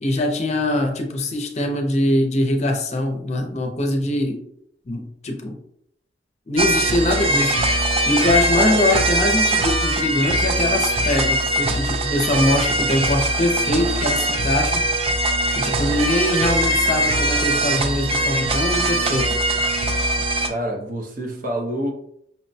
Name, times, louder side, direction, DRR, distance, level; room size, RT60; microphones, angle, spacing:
voice 1, 0.0-4.4 4.9-5.6 6.5-7.6 8.1-14.8 15.5-19.4, left 1 dB, 40° left, 0.6 m, -22 dB
sound 1, 6.6-20.5, right 1 dB, 35° right, 0.4 m, -21 dB
voice 2, 20.5-21.9, right 1 dB, 50° right, 0.7 m, -27 dB
5.5 x 2.1 x 2.6 m
head